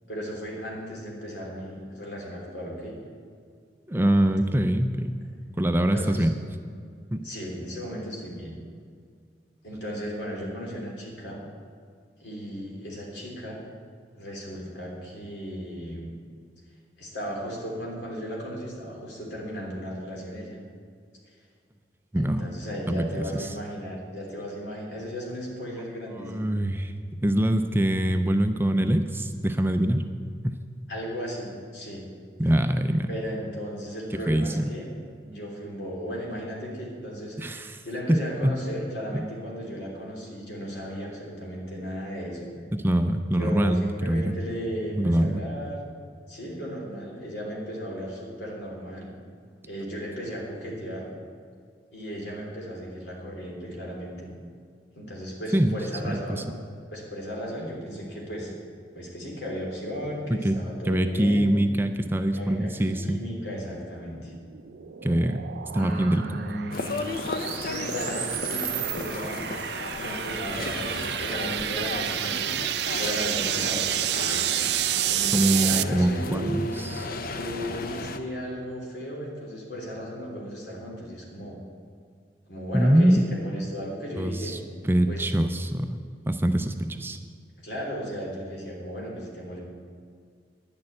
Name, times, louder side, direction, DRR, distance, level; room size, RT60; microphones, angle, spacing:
voice 1, 0.1-3.0 5.8-6.3 7.2-8.6 9.6-11.4 12.2-13.6 14.1-16.1 17.0-20.6 22.1-26.5 30.9-32.1 33.1-34.9 35.2-42.5 43.4-45.8 46.3-49.1 49.6-51.1 51.9-54.3 54.9-56.4 56.9-58.5 58.9-61.5 62.3-64.3 65.7-67.1 67.6-69.4 70.0-72.5 73.0-74.5 75.1-76.6 77.3-81.6 82.5-84.6 85.1-85.4 87.6-89.6, equal, 75° left, -2 dB, 3.3 m, -35 dB
voice 2, 3.9-5.2 5.6-6.3 7.1-7.3 22.1-22.5 22.9-23.0 26.3-26.9 27.2-30.0 30.4-30.6 32.4-33.1 34.3-34.7 37.4-37.8 38.1-38.6 39.1-39.2 42.7-44.3 44.9-45.4 55.5-55.8 56.1-56.4 60.3-60.6 60.8-63.2 65.0-65.5 65.7-66.2 75.3-76.6 76.9-77.1 82.7-83.2 84.2-84.6 84.8-86.0 86.3-87.2, right 1 dB, 15° right, 7 dB, 0.4 m, -24 dB
sound 1, 64.1-75.8, right 12 dB, 70° right, 0.4 m, -30 dB
sound 2, 66.7-78.2, left 3 dB, 55° left, 0.6 m, -35 dB
10.5 x 6.6 x 8.6 m, 2.2 s
head